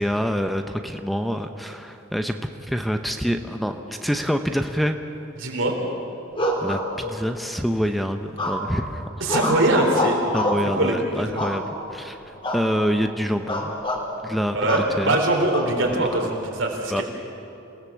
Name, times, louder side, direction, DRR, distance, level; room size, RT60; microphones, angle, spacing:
voice 1, 0.0-5.0 6.6-9.3 10.3-11.6 11.9-13.7 14.2-15.2 16.0-16.1 16.9-17.0, equal, ahead, 6 dB, 0.7 m, -26 dB
voice 2, 5.4-5.8 9.2-10.3 10.7-11.4 14.5-17.0, right 1 dB, 70° right, 1 dB, 3.9 m, -22 dB
sound 1, 6.3-7.4 8.4-8.8 9.3-10.7 11.4-11.9 12.4-12.7 13.0-13.1 13.5-14.0 14.7-14.9 15.5-16.2, left 1 dB, 25° left, 2.9 m, -26 dB
27.5 x 18.0 x 7.4 m, 2.9 s
head